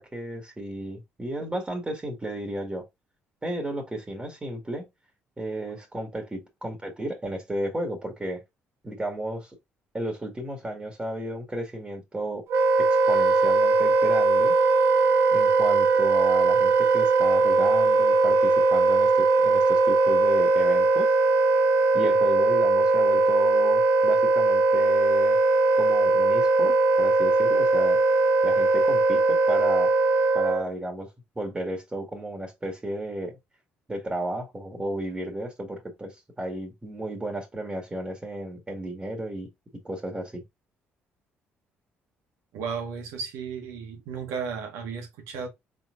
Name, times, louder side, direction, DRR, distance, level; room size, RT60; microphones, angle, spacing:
voice 1, 0.0-2.8 3.4-4.9 5.4-8.4 8.8-9.5 9.9-12.4 12.8-14.5 15.3-21.1 21.9-25.4 25.8-28.0 28.4-29.9 30.3-31.1 31.4-33.3 33.9-39.5 39.8-40.4, right 1 dB, 20° right, 1.9 m, -33 dB
Wind instrument woodwind instrument, 12.5-30.7, right 3 dB, 60° right, 1.2 m, -20 dB
voice 2, 42.5-45.5, right 6 dB, 80° right, 1.6 m, -34 dB
4.1 x 3.9 x 2.6 m
supercardioid pair, 65°, 5 cm